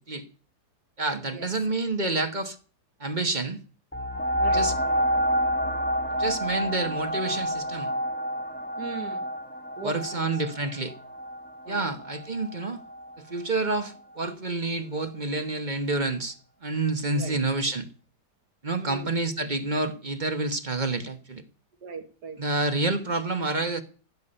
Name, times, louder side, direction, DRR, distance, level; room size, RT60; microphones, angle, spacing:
voice 1, 1.0-2.6 3.0-3.6 4.5-4.7 6.2-7.9 9.8-10.9 11.7-12.8 13.2-16.4 16.6-17.9 18.6-21.4 22.4-23.8, right 2 dB, 30° right, 1.2 m, -28 dB
sound 1, 3.9-13.2 13.8-13.9, equal, 5° left, 1.3 m, -29 dB
voice 2, 4.4-4.7 8.8-9.3 9.8-10.5 11.6-12.0 17.1-17.4 18.8-19.2 21.8-22.4 23.1-23.2, right 5 dB, 75° right, 2.6 m, -39 dB
16.5 x 7.4 x 9.9 m
omnidirectional pair, 1.8 m